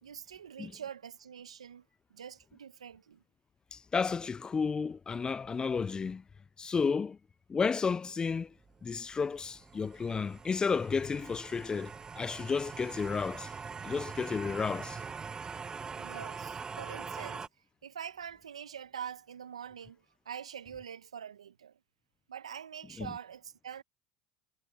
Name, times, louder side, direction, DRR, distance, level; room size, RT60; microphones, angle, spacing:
voice 1, 0.0-3.2 16.0-17.5 17.8-21.8 22.3-23.8, right 8 dB, 90° right, 1.3 m, -45 dB
voice 2, 3.7-6.2 6.6-7.2 7.5-8.5 8.8-13.5 13.8-15.0 23.0-23.1, left 5 dB, 25° left, 0.6 m, -32 dB
sound 1, 8.7-17.5, right 5 dB, 25° right, 0.7 m, -43 dB
hypercardioid pair, 75°, 3 cm